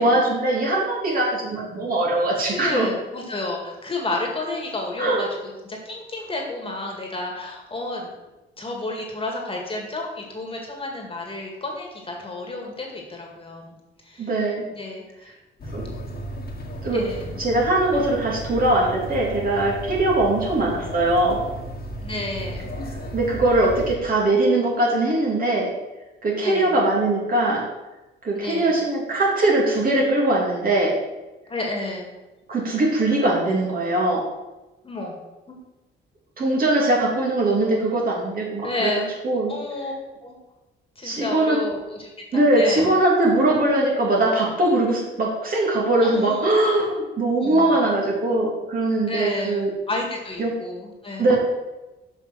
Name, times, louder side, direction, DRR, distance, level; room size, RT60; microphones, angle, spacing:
voice 1, 0.0-2.9 5.0-5.2 14.2-14.7 15.7-15.9 16.8-17.0 17.4-21.4 23.1-25.7 26.2-27.7 28.2-30.9 32.5-34.2 36.4-38.9 39.2-39.6 41.0-41.6 42.3-49.7 50.4-50.5 51.2-51.4, right 2 dB, 45° right, -3 dB, 2.8 m, -21 dB
voice 2, 2.5-8.1 8.6-13.8 14.0-14.3 14.7-15.3 16.9-17.4 22.0-22.7 26.4-26.8 28.3-28.7 31.5-32.1 34.8-35.2 35.5-35.6 38.6-39.1 39.5-39.9 40.2-40.4 41.0-42.9 46.0-46.5 47.3-47.8 49.1-51.3, left 2 dB, 25° left, 0 dB, 2.1 m, -31 dB
sound 1, 15.6-24.0, right 1 dB, 50° left, 1.8 m, -34 dB
6.4 x 5.5 x 6.2 m, 1.1 s
cardioid pair, 90°, 20 cm